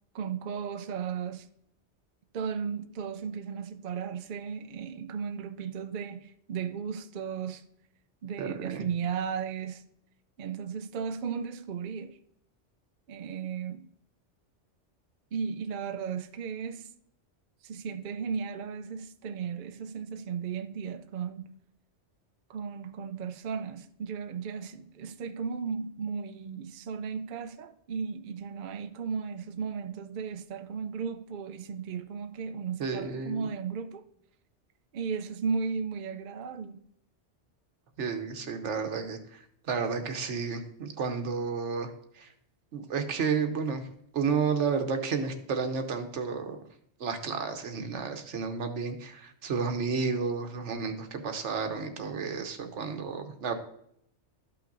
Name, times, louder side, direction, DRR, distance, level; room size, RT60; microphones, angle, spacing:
voice 1, 0.1-1.5 2.3-7.7 8.2-9.8 10.4-12.2 13.1-13.9 15.3-16.9 17.6-21.5 22.5-34.0 34.9-36.9, right 6 dB, 55° right, 0.6 m, -35 dB
voice 2, 8.4-8.9 32.8-33.5 38.0-39.4 39.7-41.9 42.2-42.3 42.7-43.8 44.1-46.6 47.0-53.5, right 5 dB, 85° right, 1.2 m, -31 dB
13.0 x 5.8 x 2.6 m
omnidirectional pair, 1.2 m